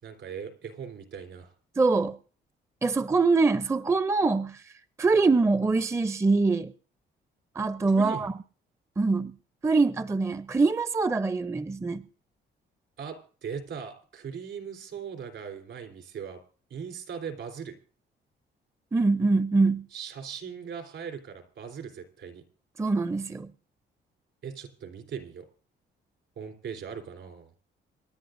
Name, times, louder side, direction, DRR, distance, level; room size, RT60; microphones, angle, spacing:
voice 1, 0.0-1.5 7.9-8.3 13.0-16.4 16.7-17.7 19.9-22.4 24.4-25.5 26.4-27.5, right 7 dB, 70° right, 3.7 m, -39 dB
voice 2, 1.8-2.2 2.8-4.6 5.0-6.7 7.6-8.3 9.0-9.3 9.6-12.0 18.9-19.9 22.8-23.5, right 3 dB, 15° right, 0.5 m, -24 dB
26.5 x 11.0 x 2.6 m
cardioid pair, 90°, 20 cm